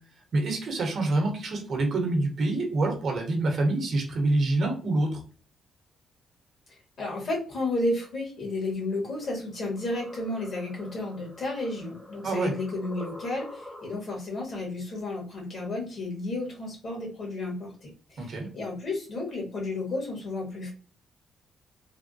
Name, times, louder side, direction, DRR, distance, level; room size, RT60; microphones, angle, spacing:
voice 1, 0.3-5.2 12.2-12.5 18.2-18.5, right 2 dB, 55° right, 2 dB, 1.0 m, -26 dB
voice 2, 7.0-20.7, left 2 dB, 45° left, -1 dB, 1.5 m, -32 dB
sound 1, 9.2-14.2, left 1 dB, 15° left, 1.0 m, -46 dB
3.4 x 2.2 x 2.6 m, 0.40 s
cardioid pair, 115°, 0 cm